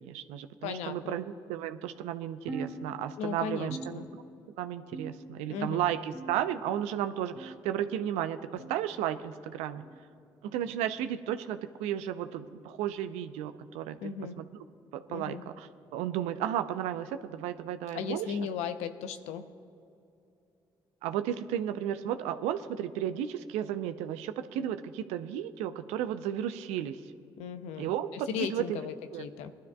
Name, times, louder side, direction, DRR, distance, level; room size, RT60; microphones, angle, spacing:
voice 1, 0.0-4.0 4.6-9.8 10.4-14.0 14.4-14.5 14.9-18.4 21.0-27.0 27.8-28.6 29.1-29.2, right 10 dB, 75° right, 11 dB, 0.6 m, -33 dB
voice 2, 0.6-1.2 3.2-4.0 5.5-5.8 14.0-14.4 15.1-15.4 17.9-19.5 27.4-29.5, left 7 dB, 75° left, 10 dB, 0.7 m, -36 dB
sound 1, 2.5-3.3 3.7-4.5 4.9-5.5 6.1-6.7 7.4-7.7 8.6-8.8 9.8-10.0 11.0-11.2 12.2-12.4 13.5-13.6 14.7-14.9 15.9-16.0 17.1-17.2, right 2 dB, 20° right, 2.0 m, -44 dB
22.5 x 12.5 x 2.3 m, 2.6 s
hypercardioid pair, 45°, 11 cm